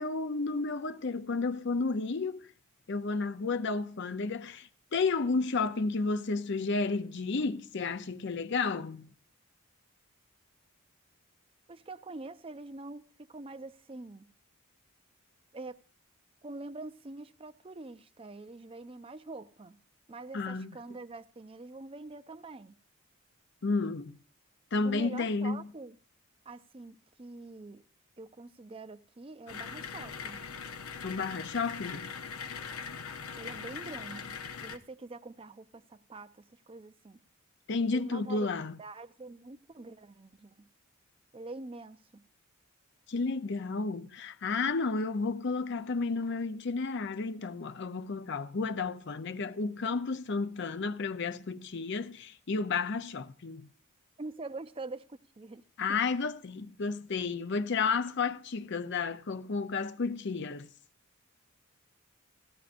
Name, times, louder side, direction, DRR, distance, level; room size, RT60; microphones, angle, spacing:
voice 1, 0.0-2.5 2.9-9.1 20.3-20.7 23.6-24.2 24.7-25.7 31.0-32.1 37.7-38.8 43.1-53.7 55.8-60.7, left 4 dB, 55° left, 0.6 m, -32 dB
voice 2, 11.7-14.3 15.5-15.8 16.4-19.8 20.1-22.7 24.8-26.0 26.5-27.8 28.2-30.4 33.3-37.2 37.9-38.5 38.8-40.7 41.3-42.2 54.2-55.6, right 3 dB, 25° right, 0.5 m, -45 dB
sound 1, 29.5-34.8, left 6 dB, 80° left, 0.8 m, -41 dB
17.0 x 14.5 x 2.5 m
head